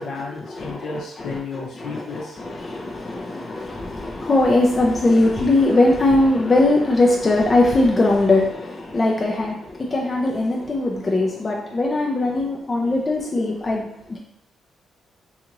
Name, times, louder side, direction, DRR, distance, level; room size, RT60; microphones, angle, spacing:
voice 1, 0.0-2.4, left 4 dB, 70° left, -2 dB, 0.8 m, -32 dB
voice 2, 2.4-14.2, left 2 dB, 35° left, -2 dB, 0.4 m, -20 dB
2.7 x 2.4 x 2.9 m, 0.77 s
supercardioid pair, 60°, 0 cm